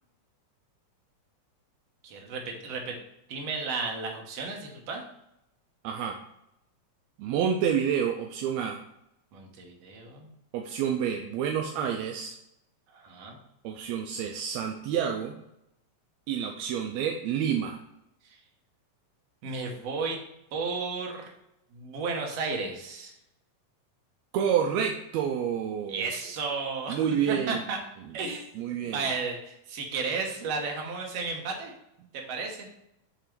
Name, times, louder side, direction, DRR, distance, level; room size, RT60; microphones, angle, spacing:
voice 1, 2.0-3.0 3.3-5.0 9.3-10.3 12.9-13.4 18.2-18.4 19.4-20.2 20.5-21.3 21.7-23.1 25.9-27.8 28.1-31.7 32.1-32.7, right 4 dB, 60° right, 1 dB, 2.0 m, -33 dB
voice 2, 5.8-6.2 7.2-8.8 10.5-12.3 13.6-15.3 16.3-17.8 24.3-26.1 26.9-27.6 28.6-29.0, right 8 dB, 80° right, 2 dB, 1.6 m, -28 dB
6.9 x 3.7 x 4.5 m, 0.82 s
omnidirectional pair, 3.5 m